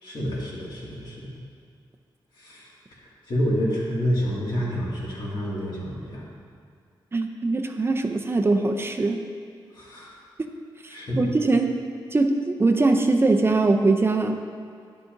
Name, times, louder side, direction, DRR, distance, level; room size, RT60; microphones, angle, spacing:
voice 1, 0.0-1.3 2.4-2.7 3.3-6.3 9.7-10.1 10.9-11.2, equal, 60° left, -5 dB, 2.1 m, -28 dB
voice 2, 7.1-9.2 10.4-10.5 10.8-11.7 12.1-14.4, right 3 dB, 30° right, 5 dB, 0.5 m, -22 dB
9.9 x 8.3 x 2.6 m, 2.2 s
cardioid pair, 85°, 9 cm